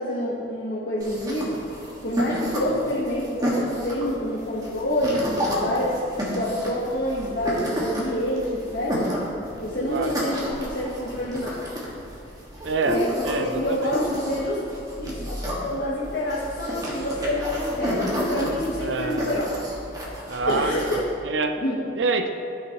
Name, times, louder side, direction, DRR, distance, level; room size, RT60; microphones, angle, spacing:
voice 1, 0.0-1.6 2.0-9.2 9.6-11.7 12.8-14.6 15.0-15.3 15.6-19.5 20.5-20.8 21.6-21.8, left 1 dB, 65° left, -6 dB, 1.1 m, -27 dB
sound 1, 1.0-21.0, equal, 20° right, 1.5 m, -31 dB
voice 2, 12.6-13.9 18.8-19.3 20.3-21.6 22.0-22.3, right 3 dB, 90° right, 7 dB, 0.5 m, -27 dB
13.0 x 6.0 x 2.9 m, 2.7 s
head